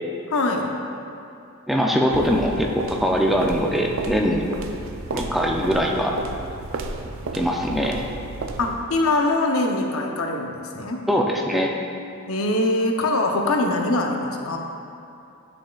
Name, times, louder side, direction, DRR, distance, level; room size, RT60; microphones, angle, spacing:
voice 1, 0.3-0.7 8.6-11.0 12.3-14.6, left 2 dB, 85° left, 2 dB, 0.7 m, -23 dB
voice 2, 1.7-4.6 5.1-6.2 7.3-8.0 11.1-11.7, equal, ahead, 0 dB, 0.4 m, -22 dB
sound 1, 2.1-8.9, right 3 dB, 65° right, 0.4 m, -33 dB
8.9 x 6.3 x 2.3 m, 2.7 s
head